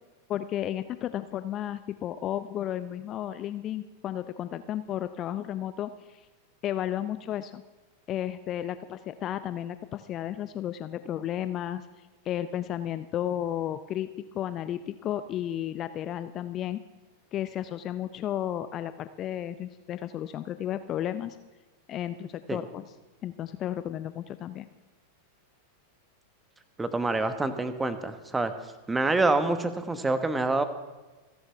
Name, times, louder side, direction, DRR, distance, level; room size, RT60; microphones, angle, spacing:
voice 1, 0.3-6.3 6.6-7.6 8.1-11.9 12.3-16.8 17.3-21.4 21.9-22.8 23.2-24.7, left 11 dB, 30° left, 13 dB, 0.5 m, -33 dB
voice 2, 26.8-28.5 28.9-30.6, right 2 dB, 10° right, 10 dB, 1.3 m, -26 dB
28.5 x 11.5 x 3.4 m, 1.2 s
figure-of-eight pair, 90°, 0 cm